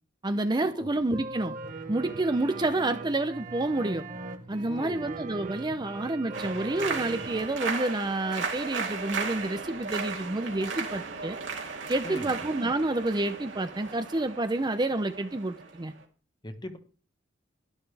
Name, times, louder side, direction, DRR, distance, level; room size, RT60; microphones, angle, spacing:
voice 1, 0.2-1.6 1.9-4.1 4.5-11.4 11.9-15.9, right 2 dB, 25° right, 0.6 m, -29 dB
sound 1, 1.1-7.5, right 3 dB, 45° right, 1.4 m, -40 dB
voice 2, 4.7-5.1 12.0-12.4 16.4-16.8, left 1 dB, 25° left, 1.2 m, -40 dB
sound 2, 6.3-16.0, right 4 dB, 70° right, 2.5 m, -36 dB
12.0 x 11.5 x 3.4 m
head